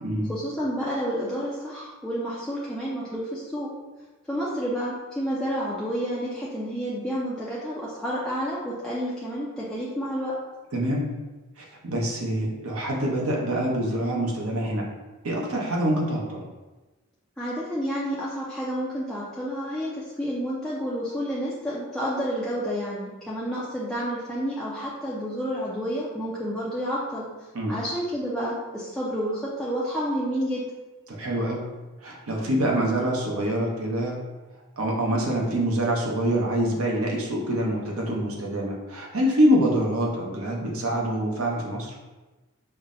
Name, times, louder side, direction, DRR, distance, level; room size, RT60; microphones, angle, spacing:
voice 1, 0.3-3.7 4.3-10.4 17.4-27.3 27.7-30.6, equal, 5° left, -8 dB, 0.3 m, -30 dB
voice 2, 10.7-11.1 11.6-14.9 15.2-16.4 27.5-27.7 31.1-31.7 32.0-34.2 34.8-41.9, right 1 dB, 75° right, -2 dB, 0.7 m, -25 dB
5.3 x 2.1 x 2.5 m, 1.2 s
head